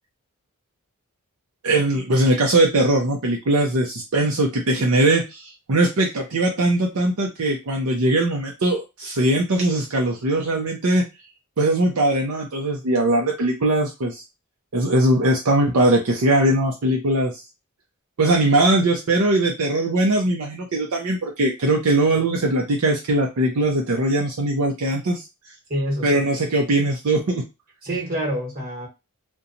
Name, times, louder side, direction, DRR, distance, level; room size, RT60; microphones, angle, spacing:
voice 1, 1.6-11.0 11.6-14.2 14.7-17.3 18.2-25.2 26.0-27.4, right 1 dB, 70° right, 0 dB, 0.5 m, -20 dB
voice 2, 25.7-26.2 27.8-28.9, equal, 40° right, 0 dB, 1.0 m, -27 dB
2.7 x 2.2 x 2.6 m, 0.25 s
head